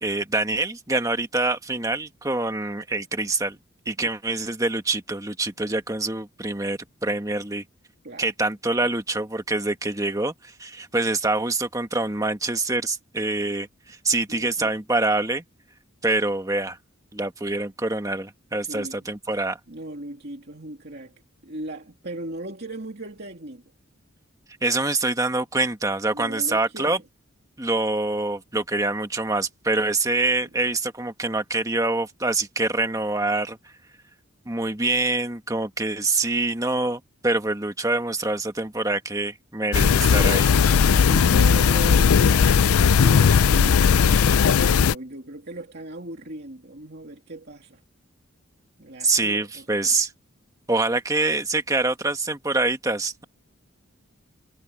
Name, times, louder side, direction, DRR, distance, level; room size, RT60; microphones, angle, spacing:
voice 1, 0.0-3.6 3.8-7.6 8.2-15.4 16.0-16.8 17.1-19.6 24.6-27.0 27.6-33.6 34.4-40.5 49.0-50.1 50.7-53.2, right 2 dB, 15° right, 1.5 m, -25 dB
voice 2, 14.3-14.7 18.6-19.1 19.7-23.6 26.1-27.0 40.8-47.8 48.8-50.0, right 1 dB, 50° right, 2.6 m, -37 dB
sound 1, 39.7-44.9, left 6 dB, 90° left, 0.5 m, -17 dB
head